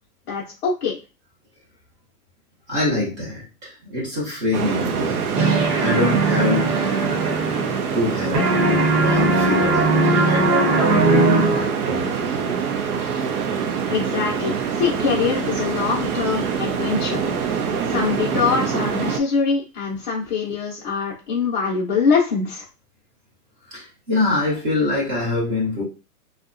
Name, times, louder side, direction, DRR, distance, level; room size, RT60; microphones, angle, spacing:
voice 1, 0.3-1.0 13.9-17.2 17.8-22.6, left 5 dB, 35° left, -6 dB, 0.5 m, -23 dB
voice 2, 2.7-5.2 5.8-6.7 7.9-9.9 10.3-10.5 10.9-12.4 23.7-25.8, left 2 dB, 15° right, -5 dB, 0.6 m, -24 dB
sound 1, 4.5-19.2, right 6 dB, 65° right, 0.6 m, -25 dB
sound 2, 5.3-8.1 8.3-12.0, right 2 dB, 80° right, 1.1 m, -20 dB
2.7 x 2.2 x 2.4 m, 0.31 s
hypercardioid pair, 150°, 47 cm